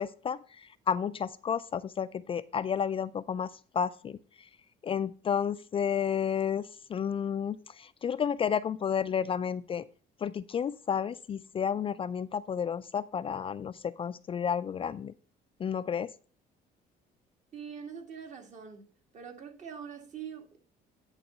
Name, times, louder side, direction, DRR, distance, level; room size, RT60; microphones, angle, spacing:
voice 1, 0.0-4.5 4.8-9.8 10.2-15.1 15.6-16.1, left 7 dB, 35° left, 0.3 m, -31 dB
voice 2, 17.5-18.9 19.1-20.6, right 7 dB, 45° right, 1.9 m, -43 dB
10.5 x 3.9 x 5.5 m
cardioid pair, 110°, 17 cm